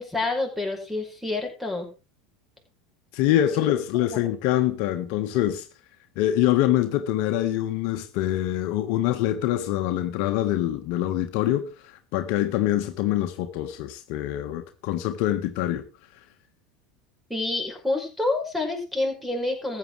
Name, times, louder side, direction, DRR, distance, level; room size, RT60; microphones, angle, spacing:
voice 1, 0.0-1.9 3.6-3.7 17.3-19.8, left 2 dB, 5° right, 5.4 m, -28 dB
voice 2, 3.1-5.6 6.2-11.7 12.1-15.8, left 13 dB, 60° left, 1.4 m, -24 dB
14.5 x 8.8 x 4.8 m
hypercardioid pair, 85°, 3 cm